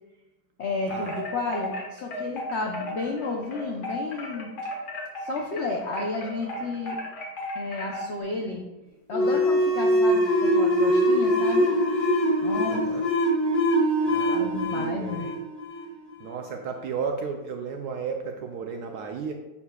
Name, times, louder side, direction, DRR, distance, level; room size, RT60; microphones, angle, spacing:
voice 1, 0.6-4.5 5.2-7.0 7.5-8.6 9.1-11.7 12.4-12.9 14.3-15.3, left 3 dB, 80° left, 0 dB, 0.6 m, -32 dB
Wind chime, 0.8-8.2, left 1 dB, 60° left, 1.6 m, -35 dB
sound 1, 9.1-16.3, equal, 40° left, 1.4 m, -23 dB
voice 2, 12.6-13.1 14.1-15.3 16.2-19.3, right 5 dB, 75° right, 3 dB, 0.9 m, -34 dB
11.0 x 4.2 x 2.3 m, 1.1 s
omnidirectional pair, 2.1 m